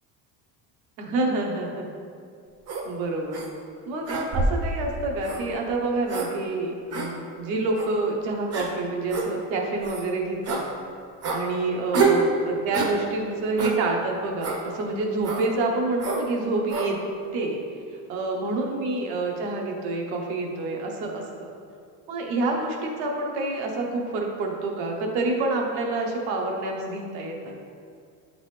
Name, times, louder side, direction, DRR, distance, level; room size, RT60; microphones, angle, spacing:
voice 1, 1.0-1.9 2.8-3.4 3.9-10.6 11.3-17.0 17.3-17.6 18.1-21.5 22.1-27.5, right 2 dB, 70° right, 1 dB, 1.0 m, -27 dB
sound 1, 2.7-2.9 3.3-3.5 4.1-4.7 5.2-5.4 6.1-6.3 6.9-7.1 7.8-7.9 8.5-8.7 9.1-9.3 9.8-10.0 10.5-10.6 11.2-11.4 11.9-12.2 12.7-13.0 13.6-13.8 14.4-14.6 15.2-15.5 16.0-16.2 16.7-16.9, right 4 dB, 40° right, 0.7 m, -26 dB
8.1 x 3.9 x 3.3 m, 2.3 s
cardioid pair, 165°, 41 cm